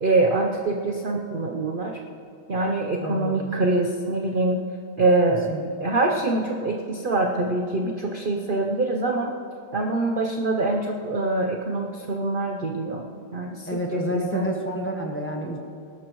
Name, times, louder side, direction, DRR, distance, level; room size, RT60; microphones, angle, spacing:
voice 1, 0.0-2.0 2.5-4.6 5.0-9.3 9.7-13.1 13.3-14.5, right 2 dB, 55° right, 1 dB, 0.5 m, -24 dB
voice 2, 3.0-3.5 5.5-5.9 13.7-15.6, equal, 10° left, 0 dB, 1.0 m, -30 dB
19.5 x 12.0 x 3.1 m, 2.6 s
omnidirectional pair, 2.0 m